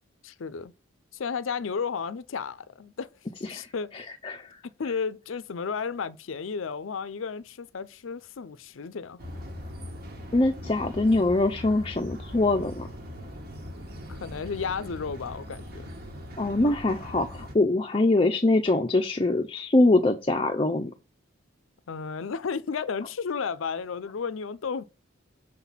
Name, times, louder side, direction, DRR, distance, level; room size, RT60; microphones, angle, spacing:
voice 1, 0.2-0.7 1.1-3.1 3.5-4.0 4.6-9.2 14.1-15.9 16.6-16.7 21.9-24.8, left 5 dB, 80° left, 0.5 m, -33 dB
voice 2, 3.9-4.6 10.3-12.9 16.4-20.9, left 2 dB, 25° left, 0.5 m, -23 dB
sound 1, 9.2-17.6, equal, 50° right, 1.5 m, -40 dB
6.6 x 4.1 x 5.6 m
head